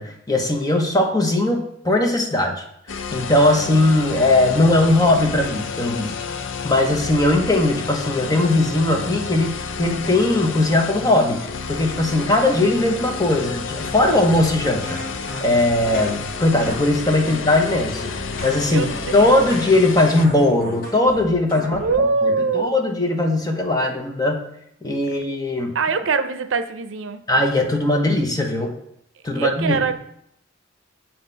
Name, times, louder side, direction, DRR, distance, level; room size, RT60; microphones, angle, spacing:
voice 1, 0.0-2.6 3.1-6.1 6.6-15.0 15.4-18.1 18.4-18.9 19.1-21.8 22.2-24.5 24.8-25.7 27.3-28.7 29.2-29.8, left 2 dB, 20° left, 3 dB, 0.9 m, -19 dB
sound 1, 2.9-20.3, left 5 dB, 75° left, 0.5 m, -30 dB
sound 2, 14.8-21.9, left 1 dB, 50° left, 1.2 m, -35 dB
voice 2, 18.6-19.2 21.8-22.8 25.7-27.2 29.4-29.9, right 4 dB, 80° right, 10 dB, 0.6 m, -22 dB
7.3 x 2.9 x 5.5 m, 0.73 s
head